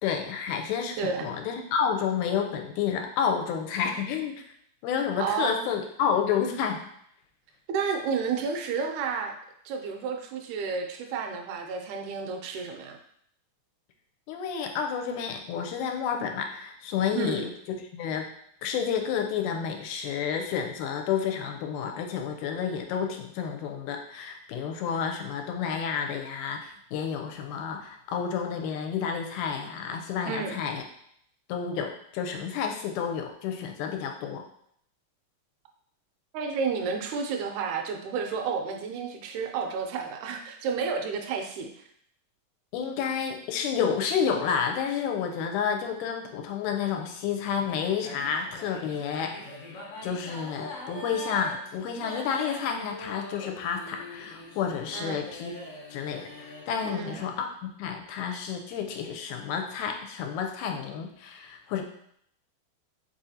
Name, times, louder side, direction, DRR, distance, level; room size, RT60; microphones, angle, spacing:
voice 1, 0.0-4.4 4.8-6.9 14.3-17.5 17.9-18.3 18.6-30.8 31.5-34.4 42.7-49.4 50.0-55.5 55.9-61.8, left 7 dB, 85° left, 4 dB, 2.0 m, -30 dB
voice 2, 1.0-1.3 5.2-5.7 7.7-9.4 9.7-13.0 17.1-17.5 30.2-30.6 36.3-41.8 54.9-55.2 56.8-57.2, right 5 dB, 80° right, 4 dB, 1.9 m, -31 dB
sound 1, 47.6-57.4, left 1 dB, 65° left, 1.5 m, -43 dB
4.7 x 3.7 x 2.7 m, 0.69 s
omnidirectional pair, 3.6 m